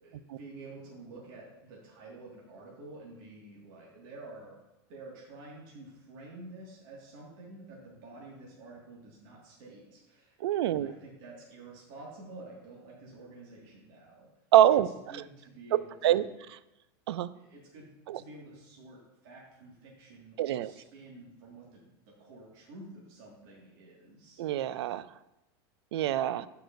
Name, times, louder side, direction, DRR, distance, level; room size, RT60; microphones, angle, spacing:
voice 1, 0.0-4.6 4.9-10.4 10.6-14.3 14.7-16.4 17.3-24.4, right 2 dB, 60° right, -4 dB, 1.8 m, -49 dB
voice 2, 10.4-10.9 14.5-14.9 16.0-16.2 17.1-17.3 18.1-18.2 20.4-20.7 24.4-25.1 25.9-26.5, right 12 dB, 90° right, 17 dB, 0.4 m, -25 dB
13.0 x 4.8 x 2.6 m, 0.95 s
supercardioid pair, 140°, 13 cm